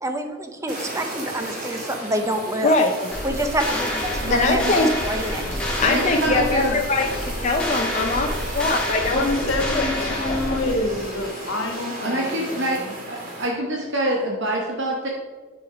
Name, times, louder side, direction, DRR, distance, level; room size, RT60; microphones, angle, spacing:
voice 1, 0.0-2.8 3.2-4.8 5.0-5.4, right 1 dB, 15° right, 6 dB, 0.7 m, -27 dB
Fire, 0.7-13.5, right 1 dB, 40° right, 2.2 m, -35 dB
voice 2, 2.6-3.0 4.3-4.9 5.8-9.4 9.7-10.4, left 3 dB, 35° left, 1 dB, 0.6 m, -22 dB
sound 1, 3.1-11.0, left 1 dB, 5° left, 1.5 m, -28 dB
voice 3, 4.2-4.9 5.8-6.8 12.0-15.1, right 1 dB, 55° right, -1 dB, 1.0 m, -26 dB
voice 4, 9.1-12.9, left 2 dB, 70° left, 4 dB, 1.5 m, -27 dB
10.0 x 5.1 x 4.9 m, 1.4 s
head